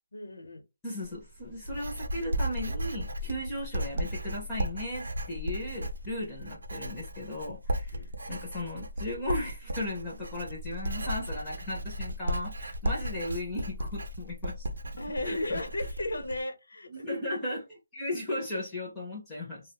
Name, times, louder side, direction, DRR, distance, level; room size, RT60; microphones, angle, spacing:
voice 1, 0.1-0.6 7.9-8.1 15.0-17.0, left 1 dB, 75° left, 0.7 m, -35 dB
voice 2, 0.8-8.0 8.3-14.7 15.2-15.6 16.1-16.2 16.9-19.6, left 1 dB, 5° left, 0.5 m, -36 dB
Writing, 1.0-16.4, equal, 60° right, 0.6 m, -35 dB
2.4 x 2.0 x 2.8 m
hypercardioid pair, 180°, 0 cm